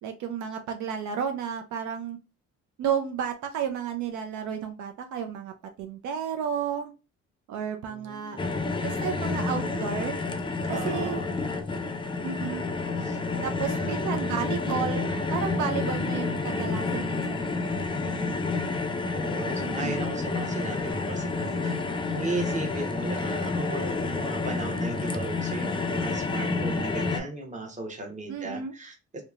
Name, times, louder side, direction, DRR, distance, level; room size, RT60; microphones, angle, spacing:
voice 1, 0.0-2.2 2.8-5.5 5.8-6.9 7.5-8.4 8.8-10.2 10.7-11.2 12.2-12.6 13.4-17.4 19.6-20.0 28.3-28.7, right 8 dB, 75° right, 6 dB, 0.4 m, -32 dB
voice 2, 7.9-8.5 10.7-11.3 13.0-13.8 17.9-18.5 19.1-21.8 22.1-29.2, right 2 dB, 25° right, 2 dB, 0.9 m, -36 dB
sound 1, 8.4-27.2, left 3 dB, 20° left, 0.3 m, -29 dB
2.9 x 2.1 x 2.3 m, 0.30 s
cardioid pair, 90°, 30 cm